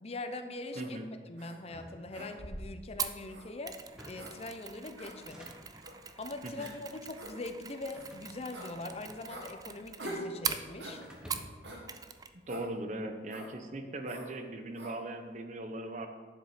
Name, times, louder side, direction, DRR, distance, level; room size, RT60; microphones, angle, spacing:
voice 1, 0.0-1.0 1.3-3.8 4.0-5.5 6.2-11.0, left 2 dB, 35° left, 8 dB, 0.6 m, -42 dB
voice 2, 0.7-1.1 6.4-6.7 12.5-16.1, right 1 dB, 45° right, 7 dB, 0.9 m, -39 dB
sound 1, 0.7-0.9 1.4-1.5 2.1-2.7 3.3-3.5 4.1-4.3 5.0-5.1 5.8-6.0 6.6-6.7 7.1-7.3 7.9-8.1 8.5-8.7 9.3-9.5 10.0-10.3 10.8-11.0 11.6-11.8 12.5-12.7 13.3-13.5 14.0-14.3 14.7-15.0, right 1 dB, 85° right, 1.9 m, -44 dB
sound 2, 1.6-2.8 3.8-4.4 5.1-5.9 6.7-7.1 8.0-9.5 9.7-10.5 11.0-11.8, equal, 5° right, 1.2 m, -53 dB
Mechanisms, 3.0-11.6 11.9-12.3 12.6-12.7, right 6 dB, 20° right, 0.4 m, -42 dB
9.9 x 7.3 x 5.0 m, 1.5 s
head